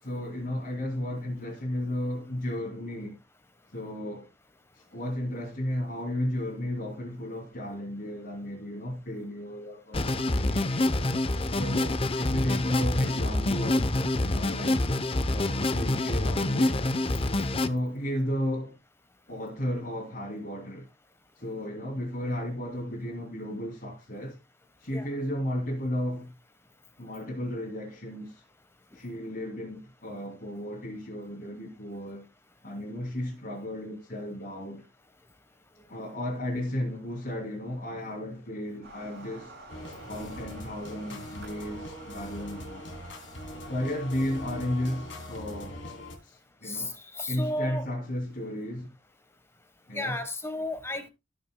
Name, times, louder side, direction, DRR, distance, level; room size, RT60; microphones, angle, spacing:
voice 1, 0.0-3.2 3.7-4.3 4.7-10.9 11.5-13.9 14.1-14.8 15.3-16.8 17.5-18.8 19.3-20.9 21.4-24.4 24.8-26.3 27.0-28.4 28.9-32.3 32.6-34.9 35.9-39.5 40.1-42.9 43.7-45.8 46.2-47.0 47.3-48.9 49.9-50.2, left 1 dB, 55° left, 2.8 m, -34 dB
sound 1, 9.9-17.7, left 2 dB, 30° left, 0.7 m, -26 dB
sound 2, 38.8-45.3, right 2 dB, 60° right, 7.0 m, -50 dB
sound 3, 39.7-46.2, left 1 dB, 85° left, 3.0 m, -42 dB
voice 2, 47.1-47.8 49.9-51.1, left 1 dB, 15° left, 1.2 m, -33 dB
19.0 x 6.5 x 2.2 m
head